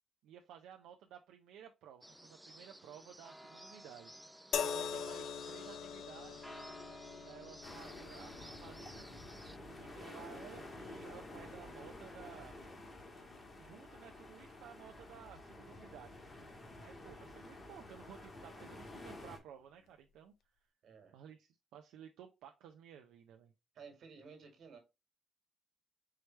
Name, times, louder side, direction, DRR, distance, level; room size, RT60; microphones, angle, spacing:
voice 1, 0.2-4.3 4.6-6.5 7.2-9.1 9.5-12.5 13.6-16.2 16.8-20.3 21.1-23.5, right 9 dB, 90° right, 0.5 m, -55 dB
sound 1, 2.0-9.6, right 1 dB, 5° right, 0.3 m, -55 dB
sound 2, 4.5-17.9 18.8-19.0, left 7 dB, 75° left, 0.5 m, -46 dB
sound 3, 7.6-19.4, left 1 dB, 30° left, 1.5 m, -51 dB
voice 2, 20.8-21.2 23.7-24.8, right 5 dB, 65° right, 1.6 m, -54 dB
4.6 x 3.2 x 3.1 m
cardioid pair, 90°, 0 cm